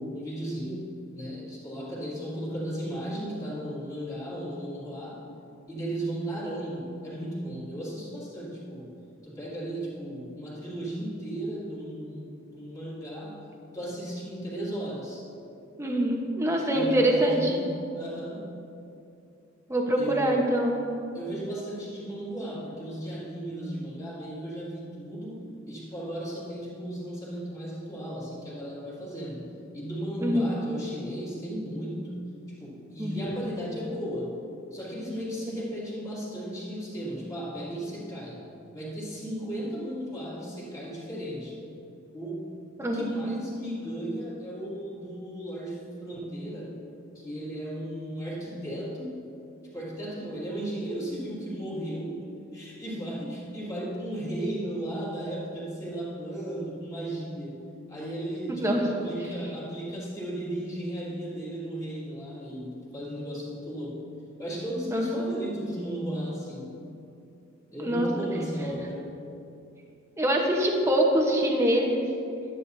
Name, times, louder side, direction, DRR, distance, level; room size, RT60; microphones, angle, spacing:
voice 1, 0.0-5.2 5.7-8.9 9.2-13.4 13.7-15.3 16.2-16.3 16.6-18.5 19.9-20.5 21.1-29.5 29.7-34.4 34.7-38.4 38.7-41.6 42.1-42.5 42.8-46.8 47.1-49.2 49.7-52.3 52.5-57.6 57.9-64.0 64.4-66.8 67.7-69.1, right 1 dB, 15° left, -8 dB, 2.5 m, -35 dB
voice 2, 15.8-17.6 19.7-20.8 30.2-30.5 33.0-33.2 42.8-43.1 58.6-58.8 64.9-65.2 67.8-68.1 70.2-72.1, right 1 dB, 15° right, 0 dB, 1.0 m, -24 dB
12.0 x 9.9 x 2.7 m, 2.6 s
head